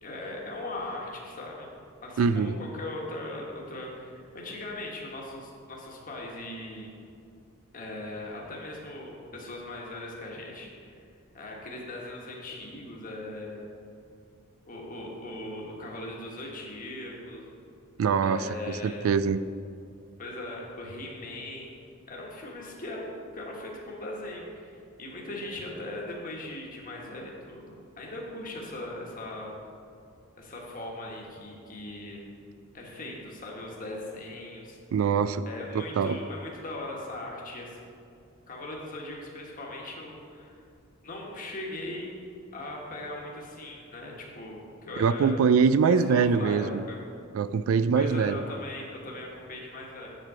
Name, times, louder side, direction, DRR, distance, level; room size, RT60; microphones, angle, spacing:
voice 1, 0.0-1.7 2.0-6.9 7.7-11.0 11.3-13.7 14.7-17.5 18.2-19.1 20.2-21.8 22.1-29.5 30.4-32.2 32.7-34.8 35.4-37.8 38.5-40.6 41.0-42.2 42.5-45.5 45.8-47.0 47.9-50.2, left 1 dB, 40° left, -2 dB, 1.4 m, -39 dB
voice 2, 2.2-2.6 18.0-19.4 34.9-35.4 35.7-36.2 45.0-46.8 47.3-48.4, right 6 dB, 70° right, 15 dB, 0.3 m, -24 dB
7.8 x 7.5 x 4.9 m, 2.5 s
head